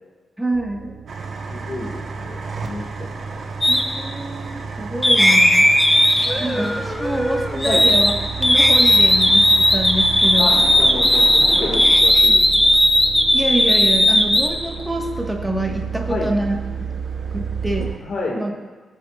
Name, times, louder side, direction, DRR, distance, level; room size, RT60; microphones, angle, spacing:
voice 1, 0.4-0.9 3.7-5.7 6.4-8.1 8.4-10.5 13.3-16.5 16.8-16.9 17.3-17.9 18.3-18.5, right 1 dB, 5° right, 0 dB, 1.7 m, -25 dB
sound 1, 0.5-17.9, right 6 dB, 85° right, 1.1 m, -33 dB
sound 2, 1.1-18.0, right 3 dB, 60° right, 1.4 m, -34 dB
voice 2, 1.5-3.4 6.1-6.8 7.6-7.9 10.4-12.7 16.0-16.4 18.0-18.4, left 2 dB, 55° left, -3 dB, 2.2 m, -30 dB
sound 3, 3.6-3.8 5.0-8.1 8.4-14.5, left 1 dB, 10° left, 1.1 m, -16 dB
21.0 x 9.4 x 2.5 m, 1.3 s
wide cardioid pair, 120°, 0 cm